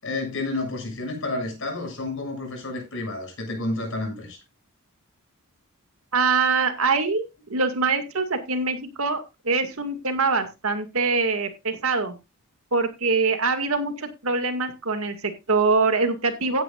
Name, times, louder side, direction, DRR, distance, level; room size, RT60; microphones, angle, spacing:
voice 1, 0.0-4.4, left 2 dB, 65° left, 6.8 m, -30 dB
voice 2, 6.1-12.2 12.7-16.6, right 4 dB, 75° right, 2.2 m, -24 dB
16.5 x 9.7 x 2.5 m
head